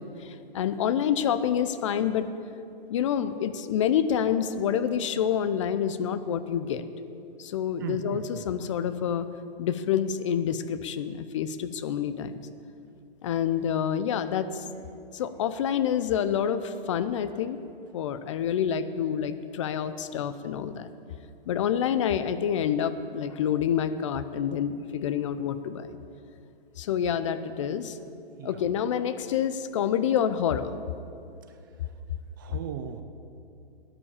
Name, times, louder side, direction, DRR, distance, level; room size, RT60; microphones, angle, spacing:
voice 1, 0.0-2.3 2.9-6.8 7.4-9.3 9.6-12.4 13.2-14.6 15.1-17.6 17.9-20.9 21.5-26.0 26.8-28.0 28.4-30.7, left 8 dB, 35° left, 12 dB, 0.5 m, -27 dB
voice 2, 7.8-8.2 28.4-28.5 32.4-33.0, right 9 dB, 20° right, 8 dB, 0.4 m, -36 dB
12.5 x 9.8 x 7.0 m, 2.6 s
hypercardioid pair, 145°, 29 cm